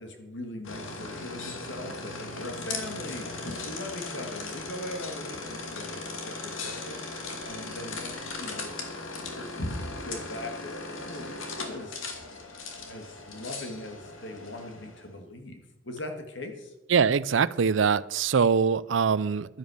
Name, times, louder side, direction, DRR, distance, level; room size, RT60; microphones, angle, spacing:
voice 1, 0.0-7.0 7.4-8.8 9.1-12.0 12.8-16.7, left 1 dB, 65° left, 5 dB, 2.2 m, -40 dB
sound 1, 0.6-15.1, left 3 dB, 90° left, 2.4 m, -38 dB
voice 2, 16.9-19.6, right 6 dB, 70° right, 18 dB, 0.5 m, -23 dB
11.5 x 10.5 x 6.6 m, 0.99 s
head